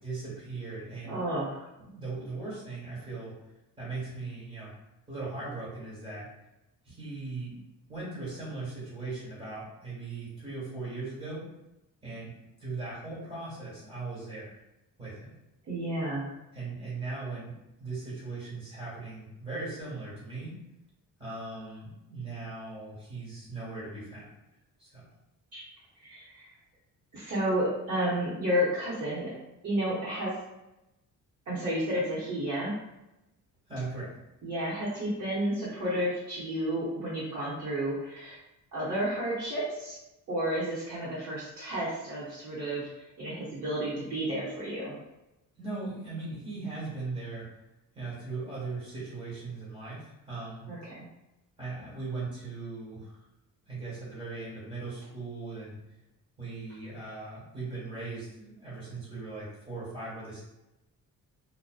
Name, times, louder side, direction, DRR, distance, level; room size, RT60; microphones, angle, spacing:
voice 1, 0.0-1.2 1.8-3.3 3.8-4.7 5.1-6.3 6.8-7.6 7.9-11.4 12.0-12.3 12.6-14.6 15.0-15.3 16.5-17.5 17.8-20.5 21.2-24.3 24.8-25.0 33.7-34.1 45.5-47.5 47.9-50.7 51.6-53.2 53.7-55.8 56.4-60.4, right 3 dB, 15° right, -9 dB, 1.3 m, -39 dB
voice 2, 1.0-1.7 15.7-16.2 25.5-25.6 25.9-26.5 27.1-29.3 29.6-30.3 31.5-32.7 34.4-38.4 38.7-40.0 40.3-42.9 43.2-45.0 50.7-50.9, equal, 50° right, -10 dB, 0.8 m, -31 dB
2.5 x 2.1 x 2.3 m, 0.93 s
cardioid pair, 145°, 33 cm